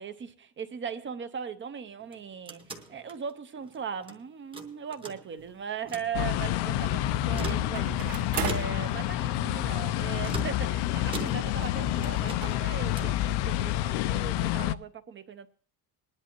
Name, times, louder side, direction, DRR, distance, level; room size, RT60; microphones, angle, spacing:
voice 1, 0.0-15.5, right 7 dB, 30° right, 0.6 m, -39 dB
sound 1, 2.0-4.2 4.5-5.5 5.8-6.1 7.2-8.0 8.5-9.0 10.2-11.7 12.0-13.2, right 2 dB, 10° right, 0.9 m, -41 dB
sound 2, 5.4-5.5 7.8-8.8 9.7-9.8 10.0-10.1 11.3-11.6 11.9-12.0 12.4-12.5, right 7 dB, 50° right, 1.8 m, -35 dB
sound 3, 6.1-14.7, left 13 dB, 70° left, 0.5 m, -28 dB
20.5 x 11.0 x 2.9 m
cardioid pair, 170°, 43 cm